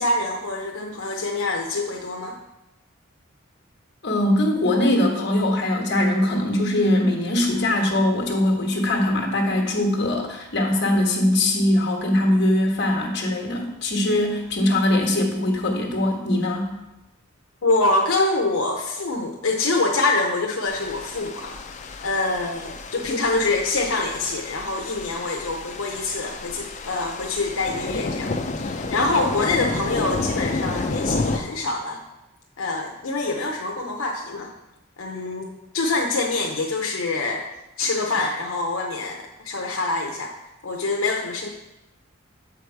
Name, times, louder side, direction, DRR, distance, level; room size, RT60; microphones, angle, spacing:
voice 1, 0.0-2.4 17.6-21.6 22.0-32.0 32.6-34.5 35.0-37.4 37.8-40.3 40.6-41.5, left 2 dB, 85° left, 1 dB, 0.7 m, -25 dB
voice 2, 4.0-16.7, left 1 dB, 55° left, 0 dB, 1.3 m, -21 dB
sound 1, 20.7-31.4, left 3 dB, 35° left, 0.4 m, -30 dB
7.1 x 4.9 x 4.6 m, 0.97 s
head